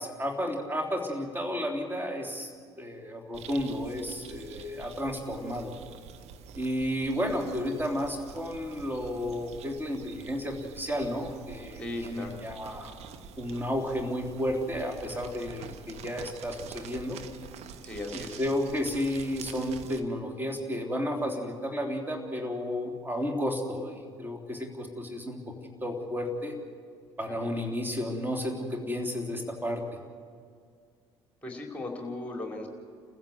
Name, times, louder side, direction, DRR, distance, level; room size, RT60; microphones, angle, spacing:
voice 1, 0.0-2.5 2.8-5.7 6.6-12.9 13.4-17.2 18.1-25.4 25.8-26.5 27.2-29.8, equal, 15° right, 2 dB, 3.6 m, -32 dB
sound 1, 3.3-20.0, right 6 dB, 50° right, 1.3 m, -47 dB
voice 2, 11.8-12.3 17.8-18.4 27.3-27.4 31.4-32.7, left 2 dB, 10° left, 1 dB, 4.7 m, -37 dB
29.5 x 15.0 x 7.8 m, 2.1 s
figure-of-eight pair, 50°, 14 cm